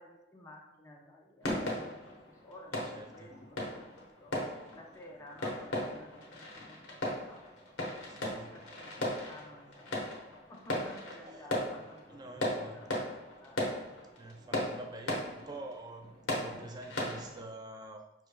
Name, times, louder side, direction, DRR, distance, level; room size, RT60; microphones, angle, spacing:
voice 1, 0.0-3.9 4.2-4.3 4.7-7.8 8.1-13.7, left 1 dB, 15° left, -2 dB, 0.6 m, -54 dB
sound 1, 1.4-17.4, left 1 dB, 75° left, 1.0 m, -38 dB
voice 2, 2.9-3.3 8.1-8.5 11.1-11.5 12.1-12.8 14.2-18.1, right 2 dB, 20° right, 4 dB, 0.3 m, -47 dB
5.6 x 3.2 x 2.2 m, 0.93 s
head